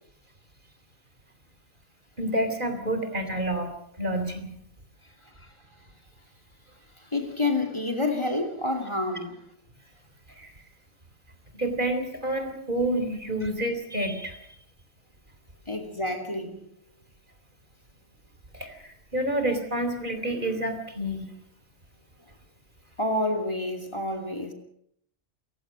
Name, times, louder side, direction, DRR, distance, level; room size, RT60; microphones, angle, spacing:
voice 1, 2.2-3.7 4.0-4.6 10.3-10.5 11.5-14.4 18.5-21.3, right 1 dB, 50° right, 3.8 m, -29 dB
voice 2, 7.1-9.3 15.7-16.6 23.0-24.5, left 2 dB, 25° left, 2.7 m, -28 dB
30.0 x 16.0 x 6.4 m
omnidirectional pair, 1.1 m